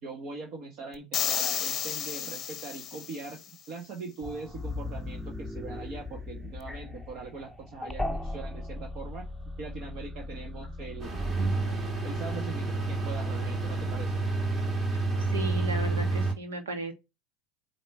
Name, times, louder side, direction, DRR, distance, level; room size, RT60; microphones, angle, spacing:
voice 1, 0.0-9.3 9.6-11.2 12.0-14.3, right 4 dB, 50° right, 1.5 m, -41 dB
sound 1, 1.1-3.4, left 10 dB, 40° left, 0.7 m, -32 dB
sound 2, 4.2-11.5, left 2 dB, 5° right, 1.1 m, -38 dB
sound 3, 11.0-16.3, right 3 dB, 35° right, 2.2 m, -29 dB
voice 2, 15.3-16.9, right 1 dB, 85° right, 1.7 m, -35 dB
8.8 x 3.0 x 4.4 m
hypercardioid pair, 85°, 0 cm